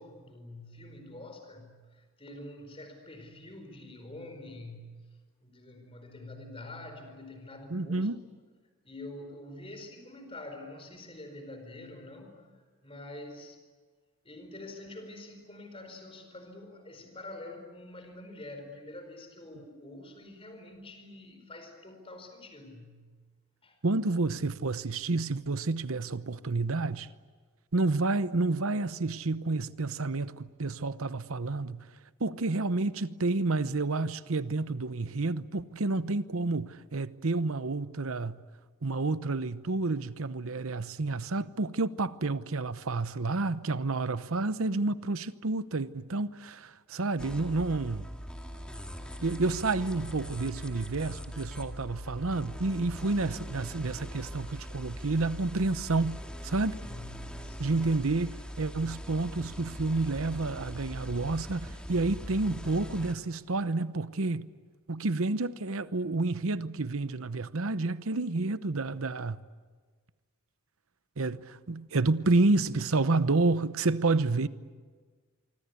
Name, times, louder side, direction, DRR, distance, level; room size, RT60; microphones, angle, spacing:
voice 1, 0.0-8.1 8.8-13.6 14.2-23.2 23.6-23.8 56.8-57.8, left 2 dB, 25° left, 4.7 m, -46 dB
voice 2, 7.7-8.2 23.8-27.1 27.7-31.9 32.2-38.4 38.8-48.1 49.2-56.8 57.6-64.5 64.9-69.4 71.2-74.5, right 3 dB, 70° right, 0.9 m, -29 dB
sound 1, 47.2-63.1, equal, 5° left, 2.3 m, -41 dB
25.0 x 25.0 x 8.4 m
head